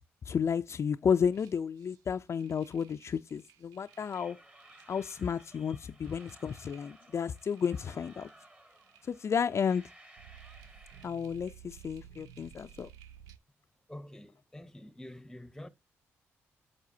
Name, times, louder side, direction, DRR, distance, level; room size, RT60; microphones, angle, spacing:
voice 1, 0.3-4.4 4.9-8.3 9.1-9.8 11.0-12.9, left 7 dB, 50° left, 0.4 m, -32 dB
sound 1, 1.3-2.0 2.4-4.3 4.6-4.9 5.4-5.5 5.8-7.0 7.4-8.4 8.7-9.1 10.2-13.4, right 9 dB, 85° right, 0.4 m, -55 dB
sound 2, 3.9-11.1, right 1 dB, 25° right, 1.7 m, -57 dB
voice 2, 13.9-15.7, left 1 dB, 10° left, 0.8 m, -47 dB
10.5 x 6.6 x 2.7 m
supercardioid pair, 50°, 6 cm